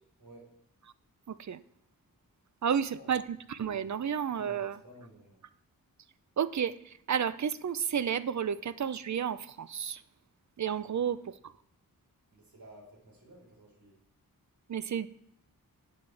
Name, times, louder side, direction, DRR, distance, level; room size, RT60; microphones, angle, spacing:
voice 1, 0.2-0.5 2.9-3.2 4.3-5.4 10.8-11.3 12.3-14.0, right 1 dB, 80° right, -1 dB, 4.0 m, -54 dB
voice 2, 1.3-1.6 2.6-4.8 6.4-10.0 10.6-11.2 14.7-15.1, right 8 dB, 55° right, 15 dB, 0.5 m, -31 dB
11.5 x 8.6 x 3.3 m, 0.76 s
wide cardioid pair, 110°, 35 cm